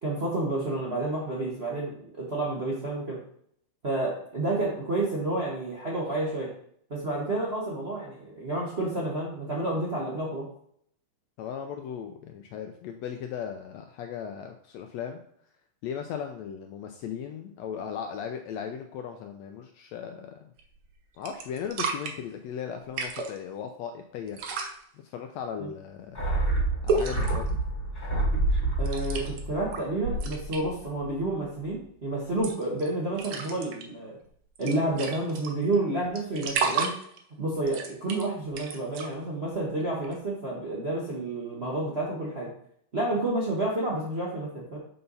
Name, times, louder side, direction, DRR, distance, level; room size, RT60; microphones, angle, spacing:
voice 1, 0.0-3.2 3.8-6.5 6.9-10.5 25.6-25.7 28.8-34.2 34.6-36.9 37.4-42.5 42.9-44.8, right 2 dB, 65° right, -5 dB, 0.6 m, -30 dB
voice 2, 11.4-15.2 15.8-20.4 21.2-24.4 25.0-26.2 26.8-27.6, left 8 dB, 85° left, 5 dB, 1.5 m, -37 dB
sound 1, 20.6-20.9 21.3-22.1 22.8-23.4 24.3-24.8 26.9-27.5 28.9-29.4 29.7-30.8 32.3-32.9 33.1-33.8 34.3-34.4 34.6-35.7 36.2-37.2 37.6-39.1 40.0-40.1, right 4 dB, 90° right, 1.2 m, -31 dB
sound 2, 26.1-30.8 31.0-31.1, right 2 dB, 15° left, 1.9 m, -28 dB
6.7 x 5.7 x 4.0 m, 0.65 s
omnidirectional pair, 3.7 m